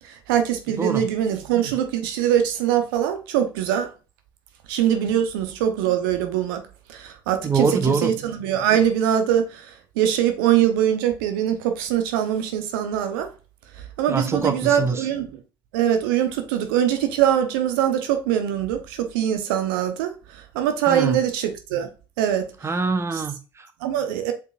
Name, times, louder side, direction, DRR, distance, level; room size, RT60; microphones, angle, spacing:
voice 1, 0.0-3.9 4.7-6.6 6.9-7.7 8.0-13.3 14.0-15.4 15.7-21.9 22.2-22.5 23.8-24.3, right 10 dB, 70° right, 0.9 m, -22 dB
voice 2, 7.4-8.1 14.1-15.1 20.9-21.2 22.6-23.7, right 4 dB, 20° right, 1.0 m, -24 dB
8.0 x 4.7 x 2.5 m
figure-of-eight pair, 55°, 12 cm